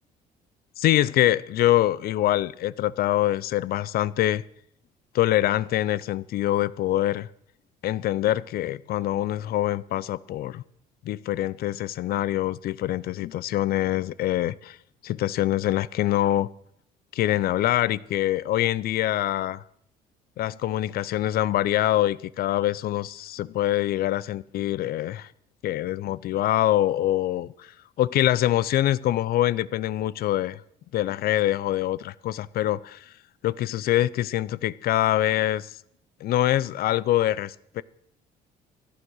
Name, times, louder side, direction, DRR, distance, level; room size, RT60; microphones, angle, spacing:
voice 1, 0.8-4.4 5.1-7.3 7.8-10.6 11.0-14.8 15.0-16.5 17.1-19.6 20.4-25.3 25.6-27.7 28.0-30.6 30.9-33.1 33.4-35.8 36.2-37.8, left 14 dB, 65° left, 0.5 m, -24 dB
15.0 x 10.0 x 6.3 m
cardioid pair, 110°, 17 cm